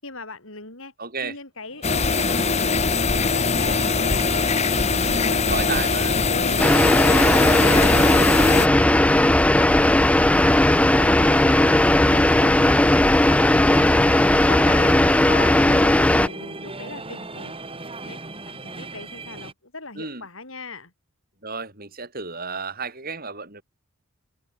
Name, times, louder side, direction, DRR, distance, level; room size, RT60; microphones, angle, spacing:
voice 1, 0.0-0.9 1.2-2.7 3.2-4.7 5.1-6.7 7.1-8.9 14.4-17.6 18.0-20.9, left 3 dB, 65° left, 7.9 m, -38 dB
voice 2, 1.0-1.4 5.5-6.2 19.9-20.2 21.4-23.6, right 5 dB, 45° right, 6.5 m, -32 dB
sound 1, 1.7-19.5, right 3 dB, 25° right, 5.2 m, -37 dB
sound 2, 1.8-8.7, left 4 dB, 30° left, 1.3 m, -22 dB
sound 3, 6.6-16.3, left 1 dB, 5° left, 0.3 m, -17 dB
open air
head